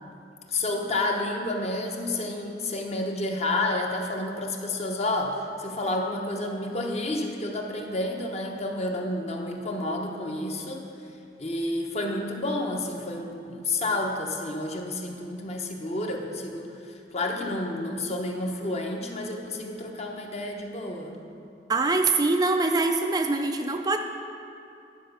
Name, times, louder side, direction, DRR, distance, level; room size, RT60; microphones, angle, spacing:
voice 1, 0.5-10.8 11.4-16.7 17.1-21.2, left 2 dB, 40° left, 1 dB, 0.9 m, -30 dB
voice 2, 21.7-24.0, right 3 dB, 20° right, 5 dB, 0.3 m, -23 dB
10.0 x 4.8 x 6.6 m, 2.6 s
head